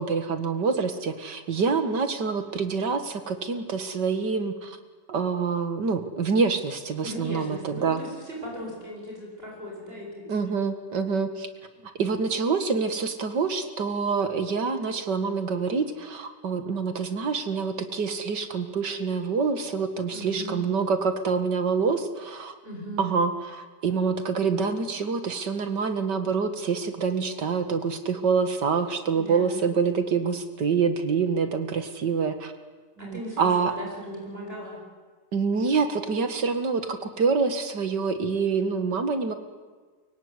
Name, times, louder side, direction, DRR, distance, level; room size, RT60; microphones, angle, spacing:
voice 1, 0.0-4.8 5.1-8.0 10.3-11.5 12.0-22.5 23.0-32.5 33.0-33.7 35.3-39.3, right 5 dB, 90° right, 8 dB, 2.5 m, -26 dB
voice 2, 7.0-10.6 20.1-20.7 22.6-23.1 29.1-29.6 33.0-34.8, equal, 35° right, -2 dB, 8.3 m, -38 dB
23.5 x 23.5 x 9.8 m, 1.4 s
omnidirectional pair, 1.8 m